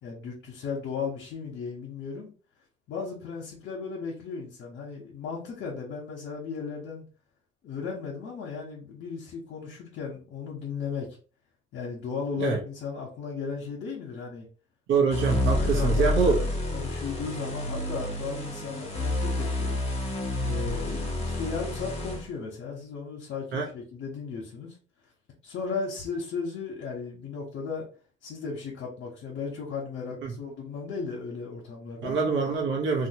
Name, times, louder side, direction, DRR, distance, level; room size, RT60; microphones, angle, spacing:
voice 1, 0.0-2.3 2.9-7.0 7.6-11.1 11.7-14.5 15.5-19.8 20.4-24.7 25.4-27.9 28.2-32.2 33.0-33.1, left 5 dB, 80° left, 1.0 m, -35 dB
voice 2, 14.9-16.4 23.5-23.7 30.2-30.3 32.0-33.1, right 5 dB, 80° right, 0.9 m, -25 dB
sound 1, 15.1-22.3, left 1 dB, 30° left, 1.1 m, -29 dB
2.9 x 2.3 x 2.9 m
cardioid pair, 90°, 20 cm